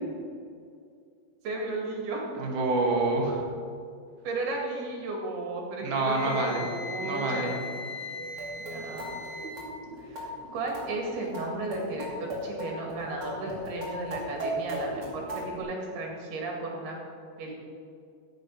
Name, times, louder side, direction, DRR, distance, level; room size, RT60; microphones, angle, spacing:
voice 1, 1.4-2.3 4.2-7.5 8.6-9.1 10.0-17.0 17.4-17.6, right 2 dB, 80° right, 0 dB, 4.3 m, -34 dB
voice 2, 2.4-3.4 5.8-6.6 7.0-7.6, right 2 dB, 60° right, 0 dB, 3.1 m, -27 dB
Wind instrument woodwind instrument, 6.1-9.7, left 3 dB, 80° left, 3.1 m, -39 dB
sound 1, 8.1-15.6, equal, 35° right, 3.0 m, -37 dB
15.5 x 8.2 x 5.6 m, 2.3 s
omnidirectional pair, 4.5 m